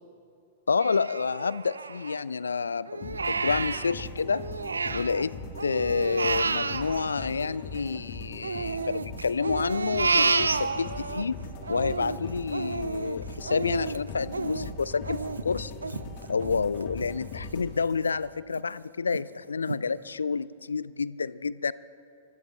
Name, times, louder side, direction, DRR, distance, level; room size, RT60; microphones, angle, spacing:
voice 1, 0.7-4.4 4.9-5.3 5.6-11.4 11.7-15.7 16.3-21.7, left 5 dB, 70° left, 20 dB, 0.3 m, -29 dB
Crying sobbing, 0.8-2.5 2.9-5.2 5.6-8.0 8.4-11.2 11.6-17.1 17.5-17.6 18.1-18.6 19.1-19.2 19.7-19.8, right 4 dB, 75° right, 0.4 m, -31 dB
sound 1, 3.0-18.3, left 3 dB, 40° left, 1.9 m, -40 dB
24.5 x 16.0 x 3.2 m, 2.7 s
figure-of-eight pair, 100°, 0 cm